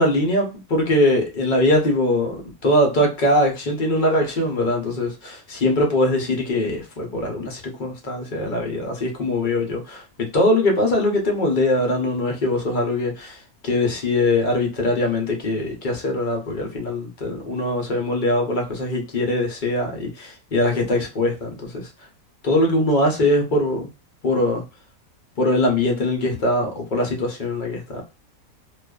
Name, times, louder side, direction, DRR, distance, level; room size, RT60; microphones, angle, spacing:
voice 1, 0.0-21.9 22.4-23.9 24.2-24.6 25.4-28.0, left 1 dB, 50° left, 0.6 m, -22 dB
2.4 x 2.3 x 2.2 m
omnidirectional pair, 1.6 m